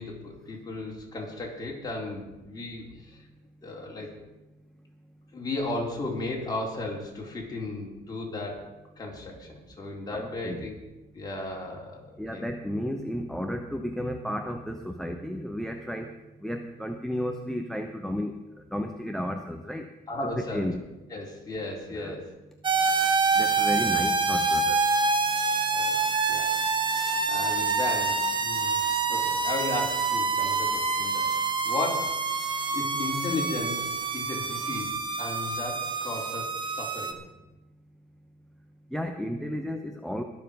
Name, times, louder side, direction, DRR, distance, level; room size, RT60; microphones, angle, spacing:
voice 1, 0.0-3.3 3.6-4.1 5.3-8.7 9.0-10.8 11.1-12.5 20.1-20.7 21.1-22.3 25.7-26.0 26.3-28.8 29.1-32.2 32.7-37.2, left 2 dB, 20° left, -2 dB, 4.2 m, -35 dB
voice 2, 10.1-10.7 12.2-16.1 16.4-18.3 18.7-19.9 20.4-20.8 21.9-22.2 23.4-24.8 38.9-40.2, equal, ahead, 6 dB, 0.8 m, -33 dB
sound 1, 22.6-37.1, right 4 dB, 30° right, 1.4 m, -26 dB
21.0 x 7.1 x 5.4 m, 1.0 s
cardioid pair, 110°, 17 cm